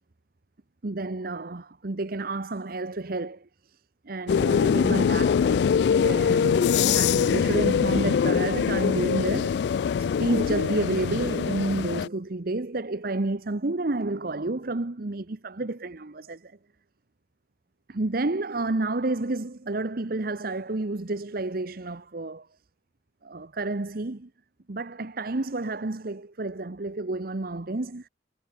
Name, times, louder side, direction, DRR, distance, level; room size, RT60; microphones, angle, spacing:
voice 1, 0.8-3.8 4.0-5.7 6.0-9.6 10.0-16.6 17.9-22.5 23.2-24.3 24.7-28.1, right 2 dB, 55° right, 1.0 m, -30 dB
sound 1, 4.3-12.1, left 7 dB, 65° left, 0.3 m, -23 dB
head